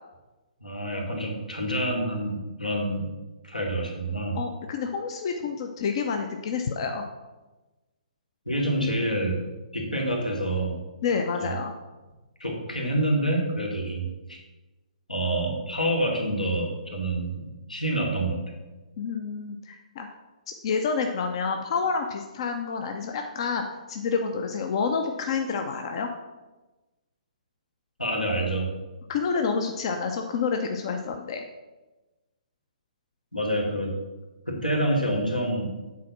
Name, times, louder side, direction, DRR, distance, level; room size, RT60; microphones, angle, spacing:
voice 1, 0.6-3.1 3.4-4.4 8.5-9.4 9.7-10.8 11.4-11.5 12.4-14.1 15.1-17.4 17.7-18.4 28.0-28.7 33.3-33.9 34.5-35.7, right 1 dB, 85° left, -1 dB, 2.3 m, -27 dB
voice 2, 4.3-7.0 11.0-11.7 19.0-20.1 20.5-26.1 29.1-31.4, left 5 dB, 40° left, 5 dB, 0.6 m, -28 dB
8.4 x 4.2 x 6.0 m, 1.1 s
figure-of-eight pair, 125°, 4 cm